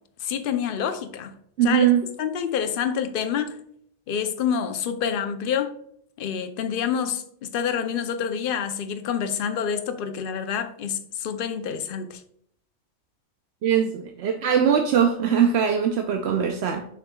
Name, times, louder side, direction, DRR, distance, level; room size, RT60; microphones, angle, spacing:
voice 1, 0.2-1.3 1.6-1.9 2.2-3.6 4.1-5.8 6.2-12.2, left 7 dB, 55° left, 0.6 m, -27 dB
voice 2, 1.6-2.0 13.6-16.9, right 8 dB, 65° right, 0.7 m, -21 dB
6.9 x 6.1 x 2.2 m
omnidirectional pair, 1.4 m